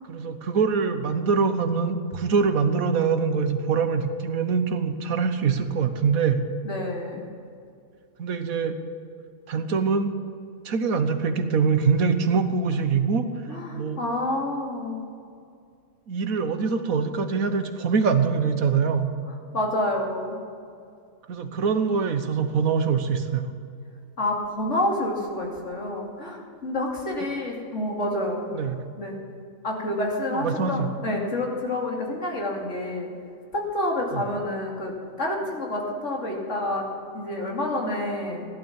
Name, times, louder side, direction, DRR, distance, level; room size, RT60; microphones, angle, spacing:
voice 1, 0.1-6.4 8.2-8.8 9.5-10.1 10.6-13.3 13.7-14.0 16.1-19.1 21.3-23.5 28.5-28.8 30.3-30.9 34.1-34.2, right 5 dB, 85° right, 8 dB, 1.5 m, -24 dB
voice 2, 6.6-7.2 13.5-15.0 19.3-20.4 24.2-28.5 29.0-29.2 29.6-33.1 33.5-36.9 37.1-38.5, left 1 dB, 60° left, -1 dB, 3.0 m, -28 dB
15.5 x 11.5 x 7.3 m, 2.4 s
omnidirectional pair, 1.4 m